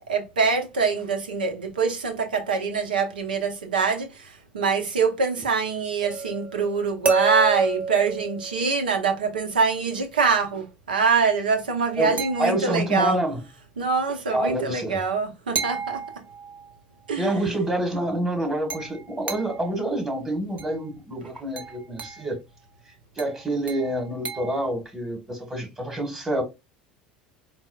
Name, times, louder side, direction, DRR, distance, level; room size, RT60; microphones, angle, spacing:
voice 1, 0.1-13.2 13.8-16.0 17.1-17.3, right 5 dB, 85° right, 0.7 m, -24 dB
sound 1, 6.0-9.1 12.2-13.0 15.6-16.8 18.7-19.8 20.6-20.8 21.6-22.3 23.2-24.7, right 5 dB, 30° right, 0.8 m, -31 dB
voice 2, 12.0-13.4 14.3-15.0 17.2-22.4 23.1-26.4, right 1 dB, 15° right, 1.4 m, -27 dB
4.1 x 2.0 x 2.3 m
hypercardioid pair, 75°, 5 cm